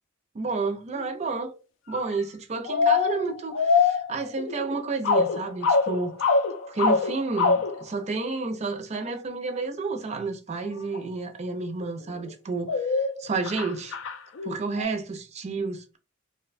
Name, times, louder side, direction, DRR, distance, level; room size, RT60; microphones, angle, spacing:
voice 1, 0.3-1.5 1.9-6.2 6.7-14.0 14.4-16.0, right 3 dB, 35° right, 0.4 m, -30 dB
sound 1, 1.0-1.1 1.9-2.2 2.7-4.8 5.0-7.8 10.9-11.0 12.0-12.3 12.7-14.8, left 4 dB, 75° left, 0.4 m, -24 dB
2.6 x 2.1 x 2.4 m
head